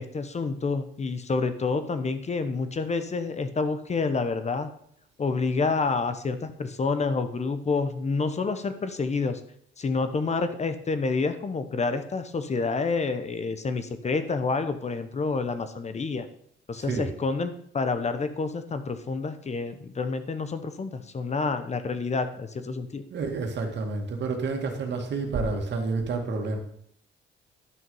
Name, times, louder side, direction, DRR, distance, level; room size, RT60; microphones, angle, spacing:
voice 1, 0.0-4.7 5.2-9.4 9.8-16.3 16.7-23.0, left 4 dB, 35° left, 10 dB, 0.9 m, -28 dB
voice 2, 23.1-26.6, right 3 dB, 60° right, 4 dB, 2.0 m, -29 dB
11.0 x 6.2 x 5.5 m, 0.68 s
cardioid pair, 90°, 20 cm